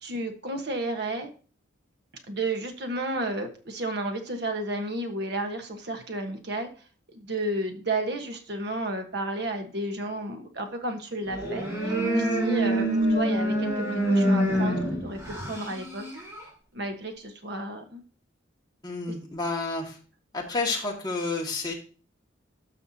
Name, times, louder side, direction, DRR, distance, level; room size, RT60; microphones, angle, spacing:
voice 1, 0.0-1.3 2.3-6.7 7.1-16.3 16.7-18.0, right 2 dB, 55° right, 5 dB, 1.3 m, -32 dB
sound 1, 11.3-16.5, right 1 dB, 15° right, 4.1 m, -26 dB
voice 2, 18.8-20.0 20.3-21.7, left 3 dB, 20° left, -1 dB, 1.8 m, -30 dB
13.0 x 5.7 x 2.8 m, 0.38 s
head